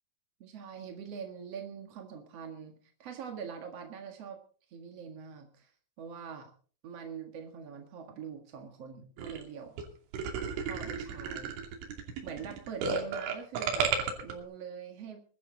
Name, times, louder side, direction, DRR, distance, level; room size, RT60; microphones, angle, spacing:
voice 1, 0.4-4.4 4.7-5.7 6.0-6.5 6.8-9.8 10.7-11.5 12.2-13.9 14.2-15.2, right 7 dB, 55° right, 4 dB, 1.8 m, -44 dB
sound 1, 9.2-9.4 9.8-9.9 10.1-14.3, right 6 dB, 80° right, 5.1 m, -32 dB
22.0 x 12.5 x 3.9 m, 0.43 s
omnidirectional pair, 5.4 m